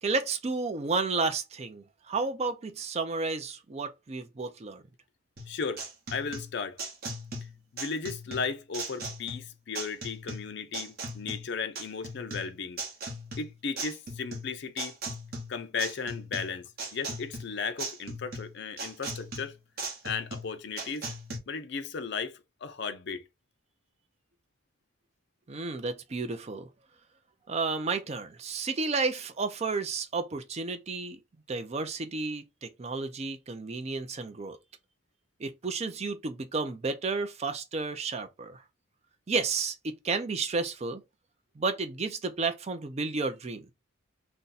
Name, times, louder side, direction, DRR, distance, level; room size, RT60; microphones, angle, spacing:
voice 1, 0.0-4.8 25.5-26.7 27.5-31.2 31.5-34.6 35.4-38.6 39.3-41.0 41.6-43.7, right 4 dB, 35° right, 0.4 m, -32 dB
sound 1, 5.4-21.4, right 2 dB, 50° right, 0.9 m, -39 dB
voice 2, 5.5-5.8 6.1-6.8 7.7-12.8 13.4-15.0 15.5-19.5 20.0-21.1 21.5-23.2, left 5 dB, 60° left, 0.5 m, -35 dB
2.6 x 2.2 x 3.8 m
head